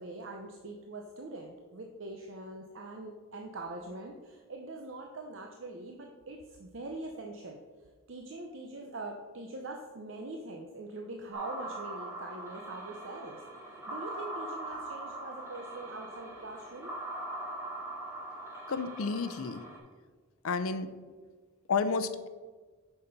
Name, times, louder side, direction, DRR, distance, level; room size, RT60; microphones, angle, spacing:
voice 1, 0.0-7.6 8.1-13.4 13.7-16.9, right 2 dB, 60° right, 2 dB, 0.7 m, -43 dB
sound 1, 11.3-19.8, right 1 dB, 10° right, 1.6 m, -41 dB
voice 2, 18.7-19.6 20.4-20.9 21.7-22.3, left 4 dB, 75° left, 11 dB, 0.6 m, -31 dB
6.8 x 5.9 x 5.2 m, 1.4 s
head